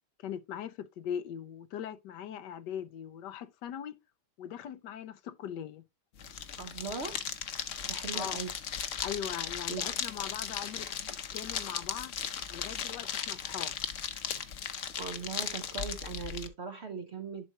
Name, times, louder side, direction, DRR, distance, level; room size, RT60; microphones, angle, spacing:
voice 1, 0.2-4.0 4.4-5.8 8.1-8.4 9.0-10.9 11.3-12.1 12.5-13.8, left 9 dB, 75° left, 1.3 m, -40 dB
sound 1, 6.2-16.5, left 8 dB, 55° left, 1.0 m, -37 dB
voice 2, 6.6-7.2 7.8-8.5 9.7-9.8 15.0-17.4, right 5 dB, 50° right, 0.8 m, -39 dB
11.0 x 4.3 x 2.8 m
omnidirectional pair, 1.9 m